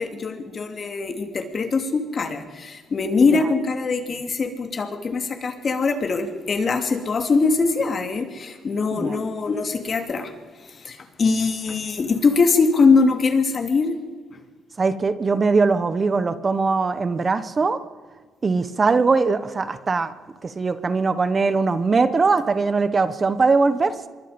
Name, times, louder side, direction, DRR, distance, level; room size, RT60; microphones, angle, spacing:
voice 1, 0.0-10.3 10.6-13.9, left 4 dB, 45° left, 5 dB, 3.1 m, -22 dB
voice 2, 14.8-17.8 18.4-20.1 20.4-24.1, right 4 dB, 35° right, 12 dB, 1.2 m, -21 dB
25.0 x 23.0 x 5.3 m, 1.4 s
cardioid pair, 90°, 0 cm